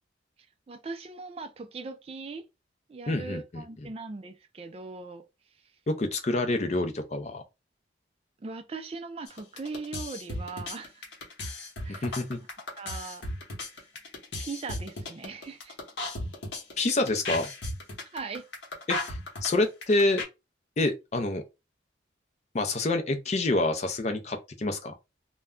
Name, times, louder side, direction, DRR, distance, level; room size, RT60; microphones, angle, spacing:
voice 1, 0.7-2.4 2.9-5.2 8.4-11.1 11.8-12.1 12.8-13.2 13.7-13.8 14.4-15.8 18.1-18.4, right 4 dB, 30° right, 0.3 m, -39 dB
voice 2, 3.1-3.6 5.9-7.4 11.9-12.4 16.8-17.5 18.9-20.2 20.8-21.4 22.5-24.9, left 2 dB, 35° left, 0.5 m, -27 dB
sound 1, 9.3-20.2, left 2 dB, 65° left, 0.9 m, -35 dB
2.2 x 2.1 x 3.6 m
head